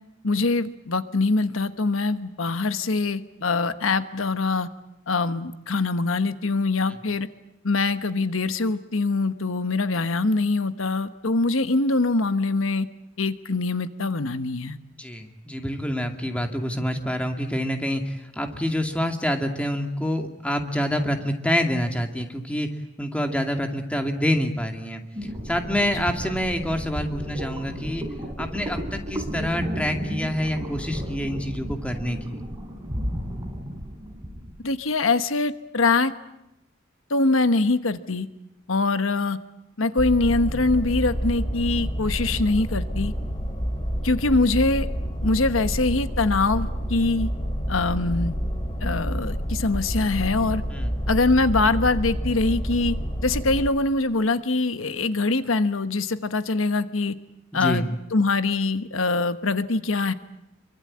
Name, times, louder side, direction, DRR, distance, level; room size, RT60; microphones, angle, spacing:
voice 1, 0.2-4.7 5.1-7.3 7.6-12.9 13.2-14.8 25.9-26.1 34.6-36.1 37.1-38.3 38.7-39.4 39.8-43.1 44.0-44.9 45.2-47.3 47.7-48.4 48.8-50.6 51.1-57.1 57.5-60.1, left 3 dB, 90° left, 11 dB, 1.2 m, -23 dB
voice 2, 15.0-22.7 23.0-25.0 25.4-28.0 28.4-32.4 50.7-50.9 57.6-57.9, equal, 5° left, 4 dB, 2.3 m, -27 dB
sound 1, 25.2-34.6, equal, 20° right, 4.4 m, -33 dB
sound 2, 40.0-53.7, equal, 25° left, 3.4 m, -28 dB
27.0 x 24.0 x 8.7 m, 0.89 s
head